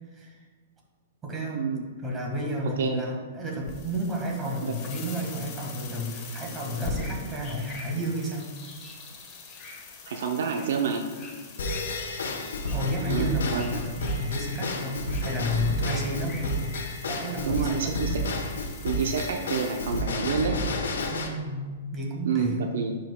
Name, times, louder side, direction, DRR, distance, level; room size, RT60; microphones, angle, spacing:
voice 1, 0.1-0.4 1.2-1.7 2.0-8.5 12.7-16.6 17.1-18.0 21.1-22.7, equal, 20° right, -1 dB, 1.6 m, -31 dB
voice 2, 1.5-1.8 2.8-3.1 4.6-4.7 10.1-11.1 13.0-13.8 17.5-18.2 18.8-20.6 22.2-23.0, right 6 dB, 75° right, 4 dB, 0.6 m, -28 dB
sound 1, 3.6-20.0, left 5 dB, 35° left, 1.2 m, -43 dB
sound 2, 6.7-16.9, left 3 dB, 20° left, 1.7 m, -48 dB
Drum kit / Drum / Bell, 11.6-21.3, left 1 dB, 85° left, 1.0 m, -31 dB
10.5 x 5.0 x 2.3 m, 1.5 s
hypercardioid pair, 135°, 0 cm